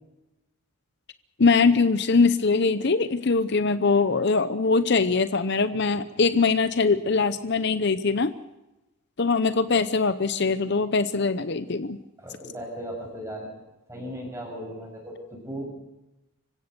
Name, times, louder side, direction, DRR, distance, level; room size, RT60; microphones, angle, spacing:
voice 1, 1.4-8.3 9.2-12.0, left 4 dB, 50° left, 12 dB, 0.7 m, -22 dB
voice 2, 12.2-13.5 13.9-15.7, equal, 15° right, 1 dB, 7.0 m, -37 dB
26.0 x 16.0 x 6.8 m, 0.98 s
head